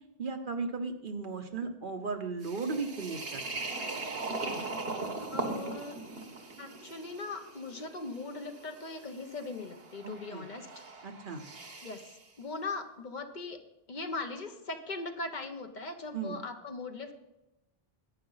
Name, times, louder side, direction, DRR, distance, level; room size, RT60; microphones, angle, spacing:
voice 1, 0.2-3.6 10.0-10.5 11.0-11.4 16.1-16.4, right 4 dB, 55° right, 6 dB, 1.1 m, -36 dB
sound 1, 2.4-12.2, right 3 dB, 70° right, 1.5 m, -40 dB
voice 2, 5.3-6.0 6.6-10.8 11.8-13.6 13.9-17.1, left 3 dB, 50° left, 6 dB, 1.0 m, -40 dB
11.5 x 8.5 x 4.0 m, 0.95 s
omnidirectional pair, 1.0 m